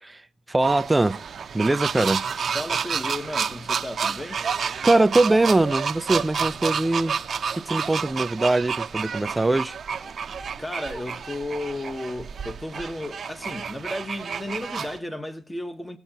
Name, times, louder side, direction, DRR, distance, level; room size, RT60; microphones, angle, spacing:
voice 1, 0.5-1.2 1.5-2.2 4.8-7.2 7.6-9.8, right 2 dB, 15° right, 0.6 m, -22 dB
sound 1, 0.6-15.0, right 6 dB, 45° right, 0.9 m, -30 dB
voice 2, 2.5-4.4 10.6-16.0, left 1 dB, 10° left, 1.3 m, -33 dB
21.0 x 7.9 x 2.9 m
cardioid pair, 90°, 0 cm